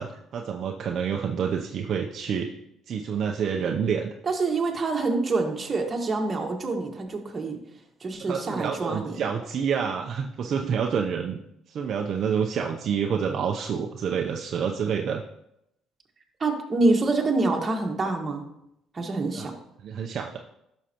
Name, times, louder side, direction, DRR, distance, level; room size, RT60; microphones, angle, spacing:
voice 1, 0.0-2.5 2.9-4.1 8.3-11.4 11.7-15.2 19.3-19.5 19.8-20.4, right 7 dB, 55° right, 2 dB, 0.6 m, -28 dB
voice 2, 4.2-7.6 8.0-9.2 16.4-18.4 18.9-19.5, right 3 dB, 30° right, 1 dB, 1.6 m, -26 dB
11.0 x 6.5 x 2.9 m, 0.79 s
cardioid pair, 100°, 0 cm